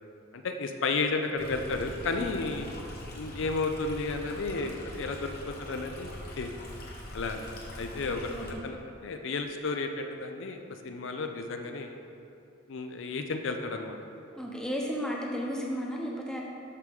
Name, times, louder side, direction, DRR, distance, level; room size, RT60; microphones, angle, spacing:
voice 1, 0.3-2.7 3.1-6.5 7.1-12.0 12.7-14.0, left 3 dB, 65° left, 5 dB, 0.5 m, -33 dB
Stream, 1.4-8.5, left 1 dB, 45° left, 1.1 m, -42 dB
voice 2, 14.4-16.4, equal, 5° left, -3 dB, 0.8 m, -33 dB
12.5 x 4.8 x 3.6 m, 2.7 s
head